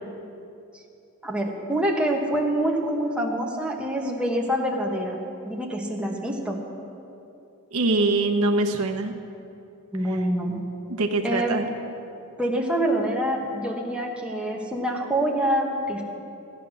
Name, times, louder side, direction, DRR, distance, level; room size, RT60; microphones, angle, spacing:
voice 1, 1.2-5.2 5.4-6.6 9.9-10.6 11.2-11.6 12.4-16.0, right 1 dB, 5° right, -1 dB, 1.3 m, -26 dB
voice 2, 7.7-9.1 10.9-11.6, right 2 dB, 70° right, 3 dB, 1.1 m, -23 dB
15.0 x 9.8 x 6.3 m, 2.7 s
head